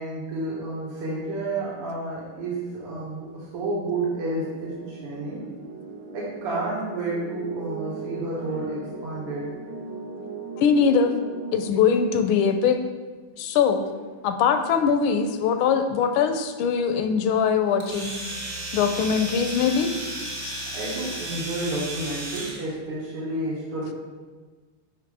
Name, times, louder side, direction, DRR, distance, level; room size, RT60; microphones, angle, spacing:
voice 1, 0.0-5.5 6.1-9.5 20.7-23.9, right 2 dB, 90° right, -6 dB, 2.3 m, -30 dB
sound 1, 3.8-11.7, right 4 dB, 60° right, 1.7 m, -38 dB
voice 2, 10.6-11.1 11.5-12.8 13.4-13.8 14.2-18.1 18.7-19.9, left 6 dB, 75° left, 7 dB, 1.3 m, -21 dB
Domestic sounds home sounds, 17.8-22.6, right 1 dB, 35° right, 0.7 m, -34 dB
5.8 x 5.0 x 4.9 m, 1.4 s
omnidirectional pair, 2.4 m